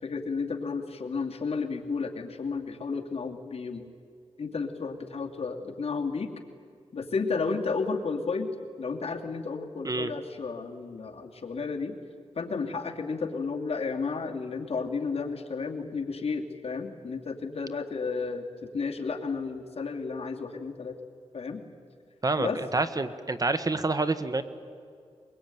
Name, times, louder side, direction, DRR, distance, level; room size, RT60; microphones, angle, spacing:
voice 1, 0.0-3.8 4.4-6.3 6.9-8.5 8.8-12.0 12.3-21.0 21.3-21.6 22.4-22.6, left 4 dB, 60° left, 2 dB, 2.6 m, -32 dB
voice 2, 22.2-24.4, right 3 dB, 35° right, 11 dB, 1.3 m, -28 dB
23.0 x 23.0 x 9.3 m, 2.2 s
wide cardioid pair, 75°, 11 cm